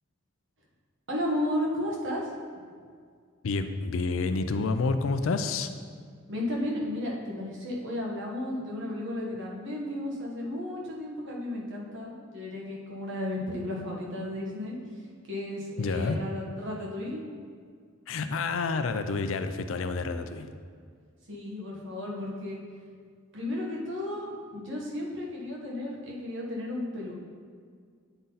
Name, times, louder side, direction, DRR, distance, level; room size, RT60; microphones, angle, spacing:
voice 1, 1.1-2.3 6.3-14.8 15.3-17.2 21.3-22.6 23.3-27.1, left 1 dB, 60° right, -3 dB, 1.4 m, -33 dB
voice 2, 3.4-5.7 15.8-16.2 18.1-20.5, left 3 dB, 70° left, 9 dB, 0.4 m, -29 dB
8.9 x 4.0 x 4.0 m, 2.1 s
head